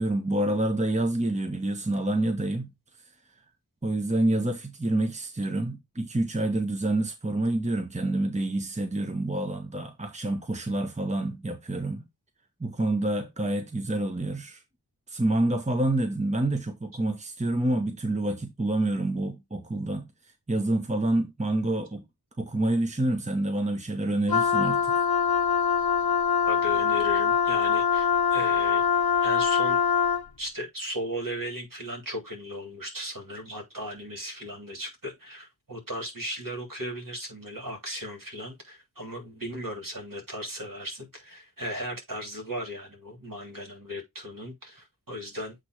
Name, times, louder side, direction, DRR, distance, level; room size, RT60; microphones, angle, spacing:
voice 1, 0.0-2.7 3.8-12.0 12.6-14.6 15.1-20.1 20.5-22.0 22.4-25.1, right 1 dB, 20° right, 1.0 m, -27 dB
Wind instrument woodwind instrument, 24.3-30.3, left 7 dB, 65° left, 0.9 m, -23 dB
voice 2, 26.5-28.8 29.2-29.8 30.4-45.6, equal, 55° right, 3.2 m, -36 dB
8.2 x 3.2 x 4.7 m
wide cardioid pair, 70°, 39 cm